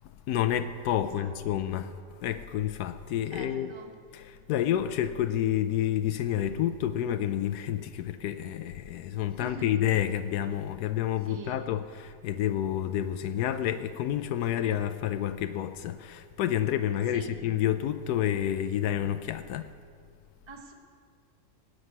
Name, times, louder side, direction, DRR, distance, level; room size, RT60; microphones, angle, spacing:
voice 1, 0.3-3.8 4.1-19.7, left 11 dB, 85° left, 1.1 m, -29 dB
voice 2, 1.0-1.3 3.3-3.9 9.3-9.7 11.3-11.6 17.1-17.4 20.5-20.7, right 3 dB, 20° right, 1.1 m, -44 dB
18.0 x 6.6 x 9.6 m
omnidirectional pair, 1.6 m